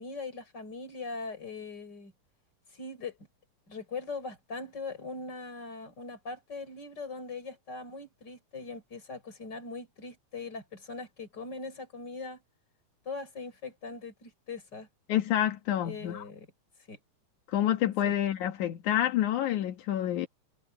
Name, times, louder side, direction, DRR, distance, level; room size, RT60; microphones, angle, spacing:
voice 1, 0.0-2.1 2.7-3.2 3.7-12.4 13.1-14.9 15.8-16.5 16.9-17.0 18.0-18.1, left 4 dB, 35° left, 5.7 m, -41 dB
voice 2, 15.1-16.2 17.5-20.3, left 12 dB, 85° left, 2.9 m, -28 dB
omnidirectional pair, 3.4 m